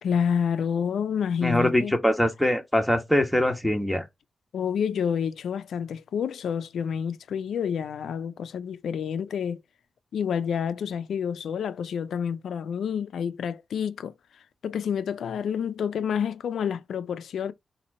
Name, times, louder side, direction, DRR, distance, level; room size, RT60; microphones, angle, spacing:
voice 1, 0.0-1.9 4.5-9.6 10.1-14.1 14.6-17.5, left 7 dB, 85° left, 0.4 m, -28 dB
voice 2, 1.4-4.0, left 1 dB, ahead, 1.4 m, -23 dB
4.2 x 2.6 x 4.1 m
cardioid pair, 50°, 0 cm